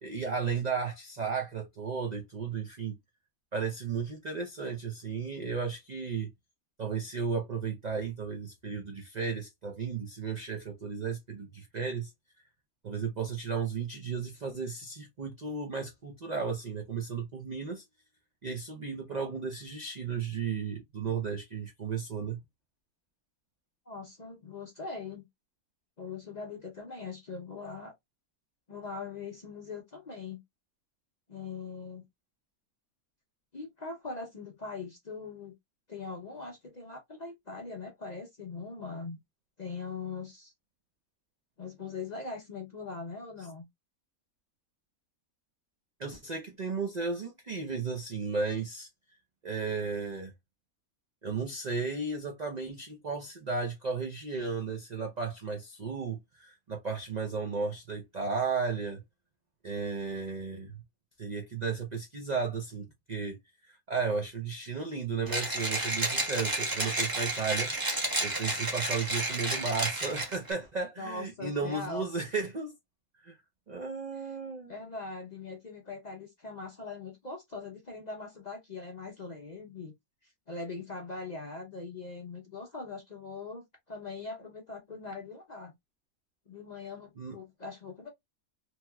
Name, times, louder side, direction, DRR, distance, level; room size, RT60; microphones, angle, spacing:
voice 1, 0.0-3.0 3.5-6.3 6.8-12.1 12.8-17.8 18.4-22.4 46.0-48.9 49.4-50.3 51.2-59.0 59.6-60.8 61.2-63.4 63.6-67.7 68.2-72.7 73.2-73.4 73.7-74.7 87.2-87.4, right 5 dB, 75° right, 0.4 m, -34 dB
voice 2, 23.9-25.2 26.0-27.9 28.7-30.4 31.3-32.0 33.5-35.5 35.9-39.2 39.6-40.5 41.6-43.6 71.0-72.1 74.1-74.3 74.7-79.9 80.5-85.7 86.5-88.1, left 4 dB, 45° left, 0.5 m, -41 dB
Mechanisms, 65.3-70.5, right 2 dB, 20° right, 0.6 m, -31 dB
2.9 x 2.8 x 2.2 m
omnidirectional pair, 1.6 m